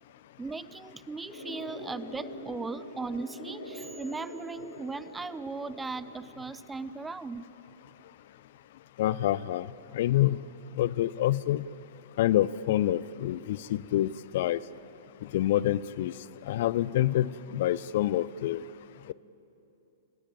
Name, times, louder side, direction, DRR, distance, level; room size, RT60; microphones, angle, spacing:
voice 1, 0.4-7.5, right 3 dB, 10° right, 16 dB, 0.6 m, -38 dB
sound 1, 1.3-6.3, equal, 70° left, 5.5 m, -44 dB
voice 2, 9.0-9.7 9.9-10.4 10.8-11.7 12.2-14.6 15.3-16.1 16.5-18.6 19.1-19.2, left 13 dB, 50° left, 19 dB, 0.5 m, -27 dB
28.5 x 15.0 x 8.8 m, 2.9 s
figure-of-eight pair, 105°, 0 cm